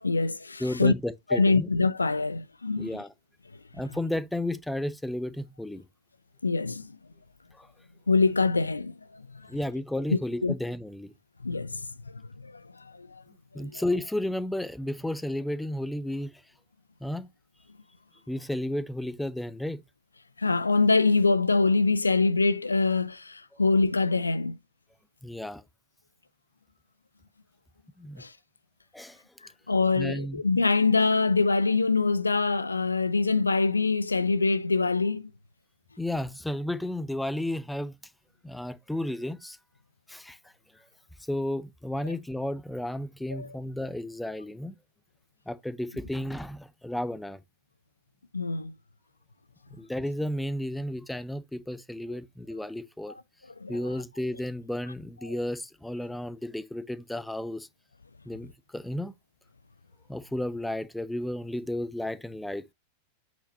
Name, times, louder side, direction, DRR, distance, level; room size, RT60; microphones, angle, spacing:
voice 1, 0.0-0.9 1.3-2.9 6.4-6.9 8.1-9.2 10.1-10.5 11.4-11.9 12.4-13.2 13.5-13.8 20.4-24.6 28.2-28.3 29.7-35.3 43.3-43.5 48.3-48.7 53.6-53.8 55.3-55.4, left 3 dB, 80° left, 0.4 m, -24 dB
voice 2, 0.6-1.7 2.8-3.1 3.7-5.8 7.5-7.7 9.5-11.1 13.5-16.3 17.0-17.3 18.3-19.8 25.2-25.6 28.0-28.2 28.9-29.2 30.0-30.4 36.0-37.9 38.4-39.6 40.1-40.4 41.3-44.8 45.5-47.4 49.7-53.1 53.7-57.7 58.2-59.1 60.1-62.7, left 1 dB, 5° left, 0.7 m, -33 dB
8.1 x 6.0 x 2.7 m
figure-of-eight pair, 90°, 0 cm